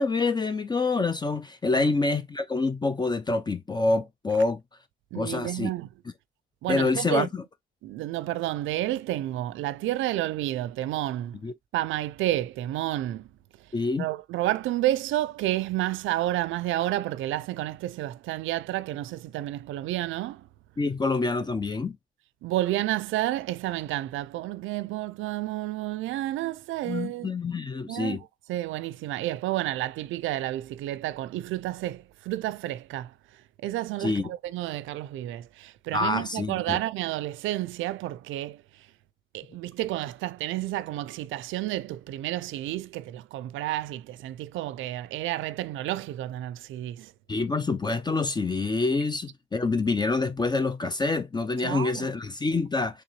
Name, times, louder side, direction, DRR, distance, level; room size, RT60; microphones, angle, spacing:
voice 1, 0.0-4.6 5.2-5.7 6.7-7.4 11.4-11.5 13.7-14.1 20.8-22.0 26.9-28.2 34.0-34.3 35.9-36.8 47.3-53.0, left 3 dB, 20° left, 0.4 m, -26 dB
voice 2, 5.1-5.9 6.6-7.3 7.8-11.4 11.7-13.3 13.6-20.5 22.4-27.4 27.9-28.2 28.5-38.9 39.3-47.1 51.6-52.1, right 15 dB, 85° right, 0.4 m, -30 dB
3.7 x 3.4 x 2.9 m
cardioid pair, 90°, 20 cm